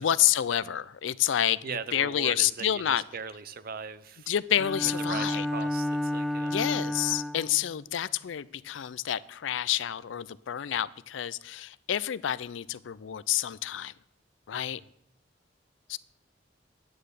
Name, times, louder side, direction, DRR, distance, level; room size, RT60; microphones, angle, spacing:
voice 1, 0.0-3.0 4.3-5.5 6.5-13.9 14.5-14.8 15.9-16.0, left 11 dB, 80° left, 18 dB, 0.4 m, -29 dB
voice 2, 1.6-4.3 4.8-6.5 14.5-14.8, right 5 dB, 50° right, 14 dB, 0.6 m, -39 dB
Bowed string instrument, 4.6-7.6, left 1 dB, ahead, 0.4 m, -31 dB
9.5 x 8.9 x 6.6 m, 0.74 s
head